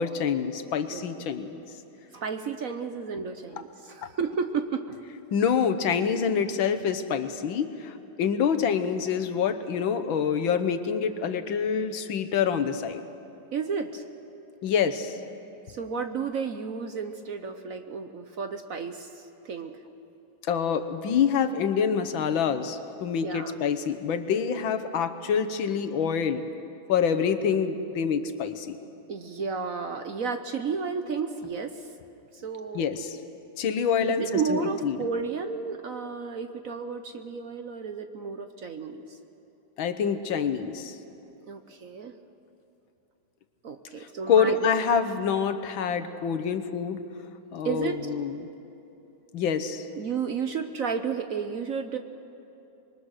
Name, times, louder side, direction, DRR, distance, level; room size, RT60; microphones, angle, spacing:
voice 1, 0.0-1.6 5.3-13.0 14.6-15.2 20.5-26.4 26.9-28.8 32.7-33.2 33.6-35.0 39.8-40.9 44.3-47.0 47.5-48.4 49.3-49.8, left 7 dB, 80° left, 9 dB, 1.8 m, -26 dB
voice 2, 2.1-5.0 13.5-14.0 15.7-19.8 23.1-23.5 29.1-31.9 32.3-32.9 34.0-39.2 41.4-42.1 43.6-44.6 47.6-48.0 49.9-52.0, right 5 dB, 55° right, 7 dB, 1.1 m, -32 dB
25.5 x 22.5 x 6.5 m, 2.9 s
omnidirectional pair, 2.1 m